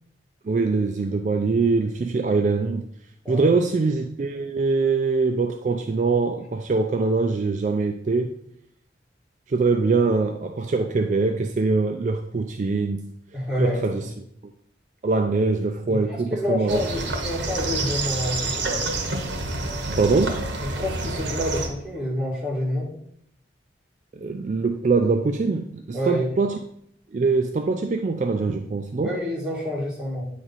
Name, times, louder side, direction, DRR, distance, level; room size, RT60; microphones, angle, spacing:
voice 1, 0.4-2.8 3.3-8.3 9.5-13.1 13.6-14.0 15.0-16.8 19.9-20.4 24.1-26.6 27.1-29.1, right 4 dB, 40° right, 4 dB, 0.3 m, -23 dB
voice 2, 13.3-14.0 15.9-18.9 20.6-22.9 25.9-26.2 29.0-30.2, left 1 dB, 5° right, -6 dB, 1.7 m, -28 dB
sound 1, 16.7-21.7, right 2 dB, 80° right, 1.0 m, -28 dB
8.9 x 3.1 x 4.0 m, 0.70 s
head